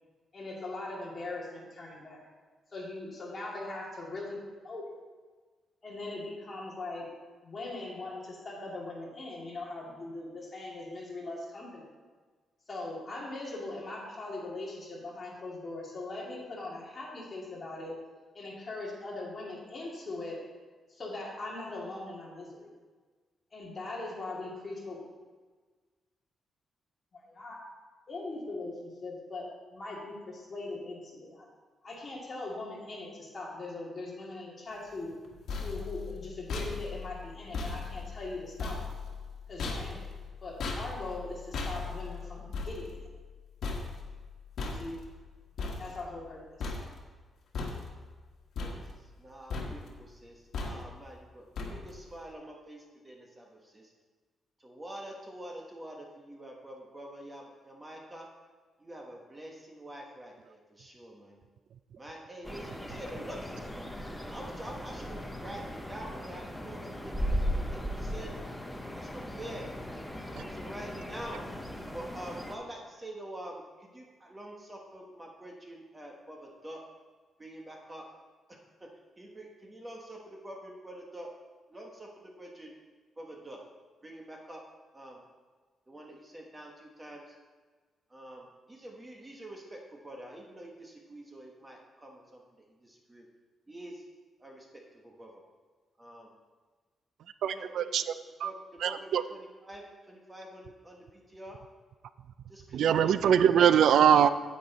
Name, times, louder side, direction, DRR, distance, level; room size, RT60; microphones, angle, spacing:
voice 1, 0.3-2.2 2.7-4.4 4.6-5.0 5.8-7.1 7.4-11.9 12.7-18.0 18.3-20.4 20.9-22.7 23.5-25.0 27.1-27.6 28.1-31.5 31.8-35.1 35.6-38.9 39.5-40.0 40.4-43.1 44.6-45.0 45.8-46.8, left 2 dB, 25° left, -4 dB, 2.4 m, -40 dB
sound 1, 35.1-46.3 46.6-47.2 47.5-48.2 48.6-49.2 49.5-50.0 50.5-51.1 51.6-52.1, left 4 dB, 65° left, 1.5 m, -38 dB
voice 2, 49.2-50.3 50.6-53.5 53.7-53.9 54.6-58.3 58.8-61.4 62.0-63.9 64.3-68.3 68.9-69.7 70.3-71.5 71.9-76.8 77.4-78.1 78.5-78.9 79.2-81.3 81.7-82.1 82.4-82.7 83.2-83.6 84.0-84.6 84.9-85.2 85.9-87.2 88.1-92.4 92.8-93.2 93.7-94.0 94.4-95.4 96.0-96.3 97.5-97.8 98.4-98.6 98.8-101.6 102.5-103.1, right 1 dB, 15° right, 0 dB, 1.1 m, -46 dB
sound 2, 62.4-72.6, equal, 5° left, 0.7 m, -37 dB
voice 3, 97.4-98.1 98.4-98.5 98.8-99.2 102.7-104.3, right 9 dB, 75° right, 13 dB, 0.3 m, -22 dB
9.7 x 8.5 x 4.0 m, 1.4 s
wide cardioid pair, 165°, 0 cm